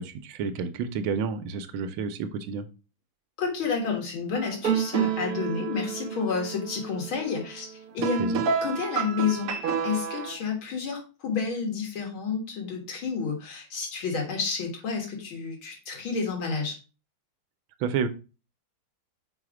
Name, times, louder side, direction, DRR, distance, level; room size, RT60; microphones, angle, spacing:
voice 1, 0.0-2.7 8.2-8.4 17.8-18.1, right 6 dB, 85° right, 10 dB, 1.4 m, -30 dB
voice 2, 3.4-7.7 7.9-9.5 9.8-16.8, left 5 dB, 80° left, 0 dB, 2.5 m, -30 dB
sound 1, 4.3-10.4, right 7 dB, 65° right, 0.9 m, -30 dB
4.9 x 4.7 x 4.8 m, 0.33 s
omnidirectional pair, 2.2 m